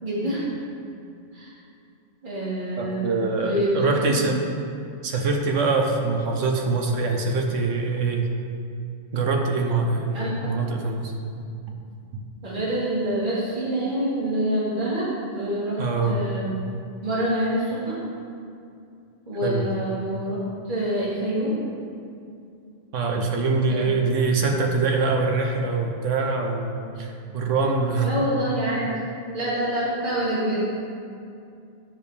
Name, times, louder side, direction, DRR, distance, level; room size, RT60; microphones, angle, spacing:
voice 1, 0.0-0.5 1.3-1.5 2.2-4.2 10.1-10.3 12.4-15.1 15.3-16.6 17.0-18.0 19.3-20.4 20.7-21.5 23.7-23.8 28.0-28.9 29.3-30.6, right 1 dB, 40° right, -8 dB, 2.1 m, -26 dB
voice 2, 2.8-4.4 5.0-8.3 9.1-11.1 12.1-12.2 15.8-16.1 19.4-19.6 22.9-28.2, right 3 dB, 85° right, 2 dB, 1.2 m, -24 dB
9.4 x 6.8 x 3.4 m, 2.5 s
omnidirectional pair, 1.3 m